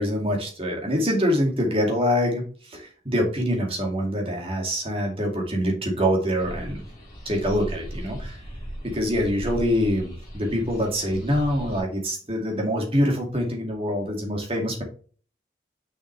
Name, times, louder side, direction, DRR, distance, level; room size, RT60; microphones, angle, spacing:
voice 1, 0.0-6.8 7.3-8.4 8.8-14.8, equal, 30° right, 1 dB, 2.3 m, -25 dB
sound 1, 6.4-11.8, right 1 dB, 20° left, 3.6 m, -37 dB
6.5 x 6.3 x 3.3 m, 0.41 s
head